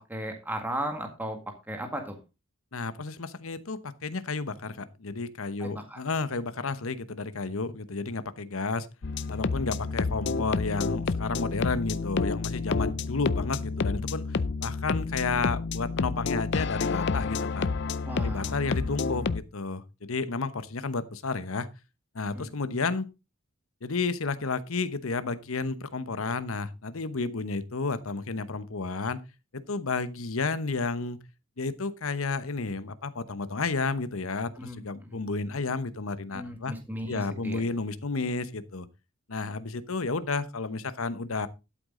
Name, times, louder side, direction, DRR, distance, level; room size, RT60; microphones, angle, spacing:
voice 1, 0.0-1.4 1.7-2.2 5.6-6.0 18.1-18.5 22.3-22.5 34.6-35.2 36.3-37.6, equal, 10° right, 1.8 m, -36 dB
voice 2, 2.7-8.9 9.3-14.3 14.6-17.7 18.2-21.7 22.1-23.1 23.8-29.2 29.7-31.2 31.6-36.7 37.1-38.9 39.3-41.5, left 3 dB, 80° left, 1.0 m, -31 dB
sound 1, 9.0-19.4, left 4 dB, 55° left, 0.5 m, -29 dB
12.5 x 8.2 x 3.8 m
head